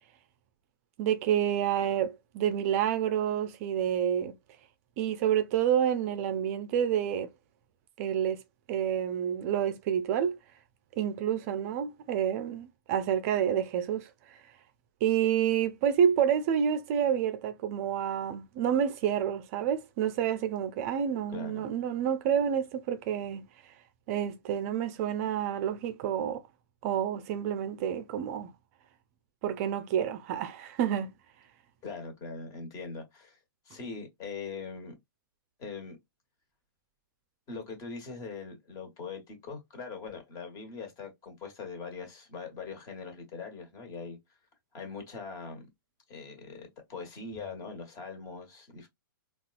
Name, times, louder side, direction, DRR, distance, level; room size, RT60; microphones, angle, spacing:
voice 1, 1.0-4.3 5.0-7.3 8.0-8.4 8.7-10.4 11.0-14.4 15.0-23.7 24.1-26.4 26.8-28.5 29.4-31.1, right 9 dB, 40° right, 0.5 m, -29 dB
voice 2, 21.3-21.6 31.8-33.4 33.6-34.9 35.6-36.0 37.5-44.2 44.7-45.7 46.1-48.9, left 4 dB, 30° left, 1.4 m, -41 dB
3.9 x 2.4 x 2.4 m
hypercardioid pair, 120°, 12 cm